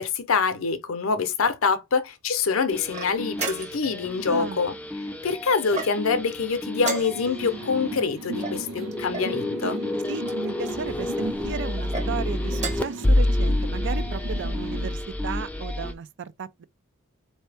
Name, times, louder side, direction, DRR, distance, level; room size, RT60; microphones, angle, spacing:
voice 1, 0.0-4.8 5.2-9.8, left 5 dB, 75° left, 0.7 m, -25 dB
sound 1, 2.7-15.9, left 1 dB, 5° left, 0.4 m, -29 dB
sound 2, 2.9-4.0 5.7-6.3 6.8-7.5 8.4-9.4 10.2-10.8 11.7-12.1 12.5-13.0, right 3 dB, 35° right, 1.0 m, -34 dB
voice 2, 4.3-4.6 10.1-16.6, right 6 dB, 60° right, 0.4 m, -34 dB
sound 3, 7.1-14.9, right 2 dB, 85° right, 0.9 m, -38 dB
4.3 x 2.7 x 3.3 m
head